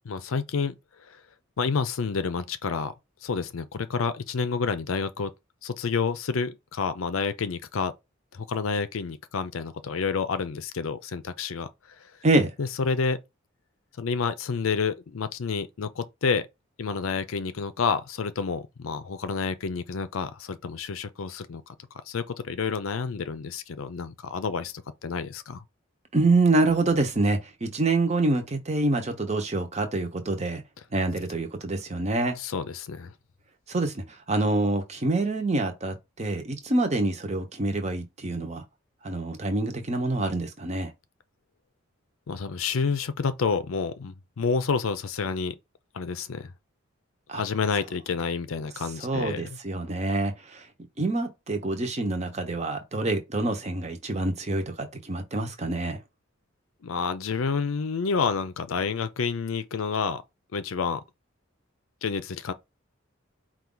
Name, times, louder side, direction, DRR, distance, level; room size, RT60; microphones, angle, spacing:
voice 1, 0.0-0.7 1.6-2.9 3.2-5.3 5.6-7.9 8.3-11.7 12.6-13.2 14.0-16.4 16.8-21.7 22.1-24.7 25.0-25.6 32.4-33.1 42.3-45.5 45.9-46.5 47.3-49.6 56.8-60.2 60.5-61.0 62.0-62.5, left 5 dB, 80° left, 0.5 m, -29 dB
voice 2, 26.1-30.6 30.9-32.4 33.7-38.6 39.0-40.9 47.3-47.4 49.0-50.7 51.0-56.0, right 2 dB, 35° right, 0.8 m, -26 dB
4.5 x 2.4 x 3.8 m
head